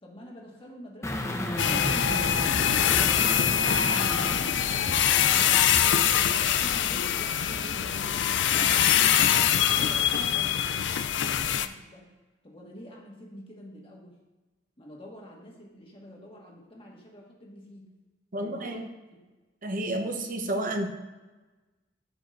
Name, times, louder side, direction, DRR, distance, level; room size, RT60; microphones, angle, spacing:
voice 1, 0.0-3.4 3.8-5.7 6.3-8.8 9.1-12.0 12.4-14.1 14.8-17.9 18.4-18.8, equal, 30° left, -2 dB, 1.6 m, -47 dB
sound 1, 1.0-5.9 6.3-6.4, left 1 dB, 15° left, 0.7 m, -34 dB
sound 2, 1.6-11.7, left 9 dB, 85° left, 0.4 m, -24 dB
voice 2, 18.3-18.8 19.6-20.9, right 1 dB, 50° right, 4 dB, 0.9 m, -30 dB
13.0 x 5.0 x 2.6 m, 1.2 s
head